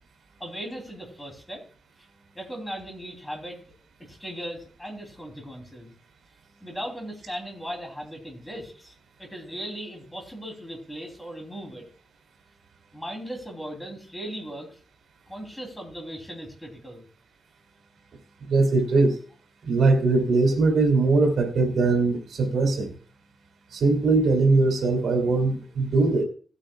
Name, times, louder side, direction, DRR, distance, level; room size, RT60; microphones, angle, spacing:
voice 1, 0.4-1.6 2.0-2.1 2.3-3.6 4.0-5.9 6.6-11.9 12.9-14.8 15.3-17.0, equal, 10° left, 2 dB, 2.9 m, -38 dB
voice 2, 18.5-19.2 19.7-22.9 23.7-26.2, right 3 dB, 85° right, 4 dB, 2.7 m, -21 dB
18.0 x 8.9 x 2.3 m, 0.40 s
wide cardioid pair, 160°, 0 cm